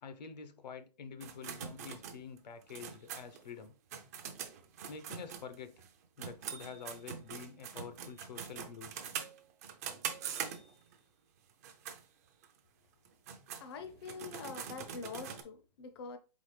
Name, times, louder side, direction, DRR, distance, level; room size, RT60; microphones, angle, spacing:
voice 1, 0.0-3.7 4.9-5.7 6.2-8.9, left 6 dB, 85° left, 0.8 m, -47 dB
sound 1, 1.2-5.9 6.2-10.9 11.5-12.0 12.4-12.5 13.0-15.4, right 8 dB, 25° right, 0.4 m, -43 dB
voice 2, 13.6-16.2, left 5 dB, 40° left, 0.5 m, -45 dB
4.0 x 3.9 x 3.2 m
hypercardioid pair, 160°, 21 cm